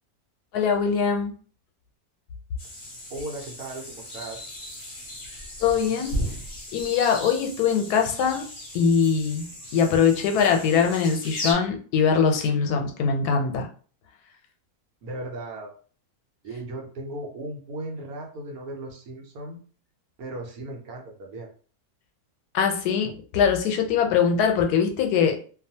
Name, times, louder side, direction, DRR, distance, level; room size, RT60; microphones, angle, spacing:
voice 1, 0.5-1.3 5.6-6.2 6.7-8.4 8.7-9.5 9.7-13.7 22.5-25.4, left 6 dB, 90° left, 3 dB, 1.1 m, -22 dB
sound 1, 2.6-11.5, equal, 45° left, 0.7 m, -36 dB
voice 2, 3.1-4.5 15.0-15.7 16.4-19.6 20.2-21.5, right 2 dB, 75° right, 1 dB, 1.1 m, -36 dB
2.6 x 2.3 x 2.7 m, 0.42 s
omnidirectional pair, 1.6 m